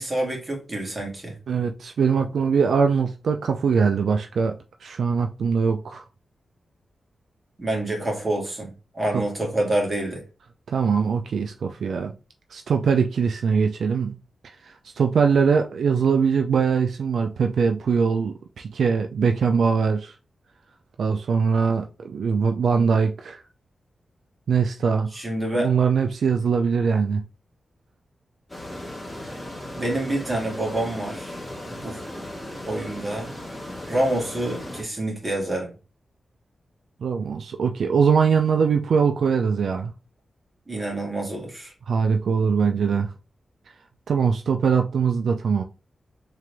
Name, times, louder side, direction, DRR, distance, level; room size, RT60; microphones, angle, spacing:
voice 1, 0.0-1.4 7.6-10.2 25.1-25.7 29.2-29.3 29.7-31.4 31.7-32.0 32.6-33.3 33.9-35.7 40.7-41.7, right 1 dB, 30° right, 2.1 m, -27 dB
voice 2, 1.5-4.5 4.8-6.0 9.1-9.2 10.7-12.1 12.5-14.2 14.4-20.1 21.0-23.4 24.5-25.1 25.6-27.2 37.0-39.9 41.9-43.1 44.1-45.6, right 6 dB, 80° right, 0.4 m, -22 dB
sound 1, 28.5-34.8, left 1 dB, 10° left, 2.1 m, -36 dB
3.7 x 3.3 x 3.3 m
cardioid pair, 70°, 0 cm